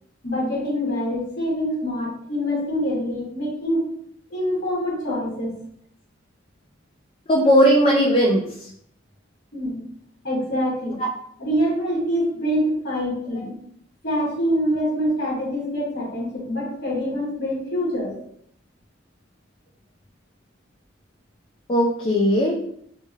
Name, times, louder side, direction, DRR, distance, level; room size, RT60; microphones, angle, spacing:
voice 1, 0.2-3.8 4.3-5.5 9.5-9.8 10.2-11.0 11.4-13.5 14.0-18.2, equal, 55° left, -5 dB, 1.2 m, -25 dB
voice 2, 7.3-8.4 13.4-13.5 21.7-22.6, equal, 30° left, -3 dB, 0.4 m, -17 dB
2.8 x 2.7 x 2.4 m, 0.68 s
head